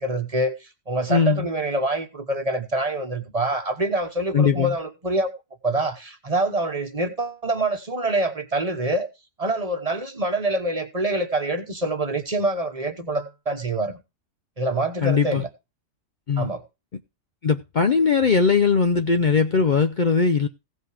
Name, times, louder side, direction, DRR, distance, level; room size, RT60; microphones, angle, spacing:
voice 1, 0.0-5.3 5.6-9.1 9.4-14.0 14.6-15.5 16.4-16.6, right 2 dB, 30° right, 1.2 m, -25 dB
voice 2, 1.1-1.5 4.3-4.7 15.0-15.4 16.3-16.5 17.4-20.5, left 5 dB, 45° left, 0.7 m, -20 dB
16.5 x 5.5 x 4.9 m
omnidirectional pair, 1.3 m